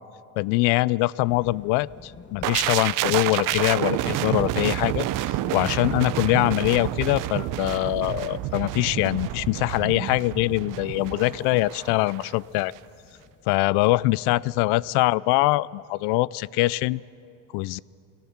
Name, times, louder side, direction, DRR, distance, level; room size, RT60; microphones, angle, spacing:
voice 1, 0.4-5.1 5.5-12.7 13.5-17.0 17.5-17.8, left 20 dB, 70° left, 22 dB, 0.5 m, -23 dB
sound 1, 1.2-15.0, left 5 dB, 25° left, 1.0 m, -49 dB
sound 2, 2.4-12.3 12.6-12.8, right 15 dB, 50° right, 0.6 m, -29 dB
Slam, 9.2-11.1, right 7 dB, 80° right, 2.2 m, -45 dB
22.0 x 17.5 x 7.2 m, 2.6 s
cardioid pair, 120°, 41 cm